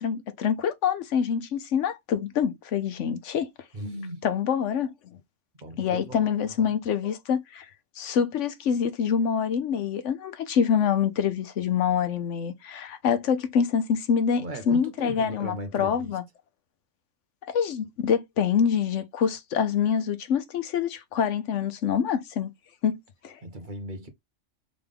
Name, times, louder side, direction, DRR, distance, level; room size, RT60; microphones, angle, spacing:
voice 1, 0.0-3.5 4.2-5.2 5.8-7.7 8.0-16.2 17.5-22.5 22.8-23.0 23.2-23.4, left 7 dB, 75° left, 1.1 m, -26 dB
voice 2, 3.7-4.3 5.6-6.7 14.4-16.2 23.4-24.1, right 1 dB, 40° right, 1.1 m, -38 dB
3.8 x 3.5 x 3.5 m
omnidirectional pair, 1.3 m